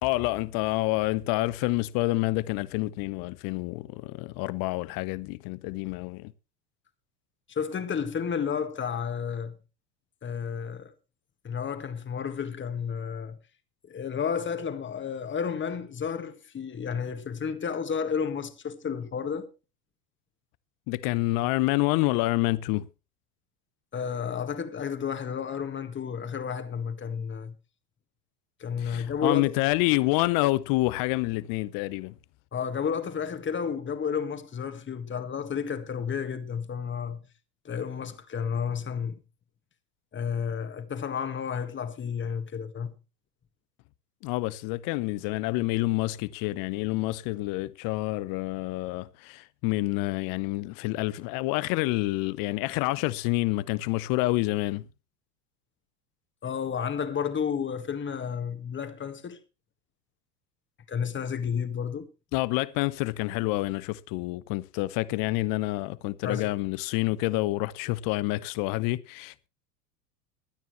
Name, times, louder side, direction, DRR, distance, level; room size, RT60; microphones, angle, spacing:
voice 1, 0.0-6.3 20.9-22.9 28.8-32.1 44.2-54.9 62.3-69.5, left 19 dB, 45° left, 0.8 m, -28 dB
voice 2, 7.5-9.6 10.2-10.9 11.4-13.4 13.9-19.5 23.9-27.6 28.6-29.5 32.5-37.3 37.7-39.2 40.1-43.0 56.4-59.4 60.9-62.1 66.2-66.5, left 7 dB, 25° left, 1.8 m, -31 dB
23.0 x 9.3 x 3.1 m
hypercardioid pair, 90°, 49 cm